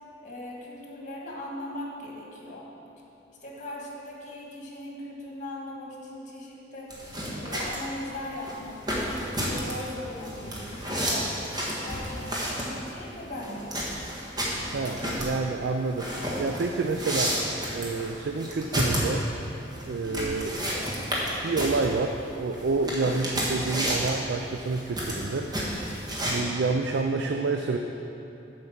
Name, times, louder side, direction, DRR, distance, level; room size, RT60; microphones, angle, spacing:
voice 1, 0.2-2.7 3.4-6.9 7.3-13.8 14.7-15.2 20.0-20.4, left 1 dB, 45° left, -2 dB, 1.6 m, -39 dB
sound 1, 6.9-26.3, equal, 25° right, 1.5 m, -31 dB
voice 2, 14.7-16.1 16.4-17.4 17.7-19.3 19.8-20.6 21.4-25.5 26.2-27.8, right 3 dB, 65° right, 4 dB, 0.4 m, -28 dB
7.8 x 5.2 x 7.2 m, 2.9 s
head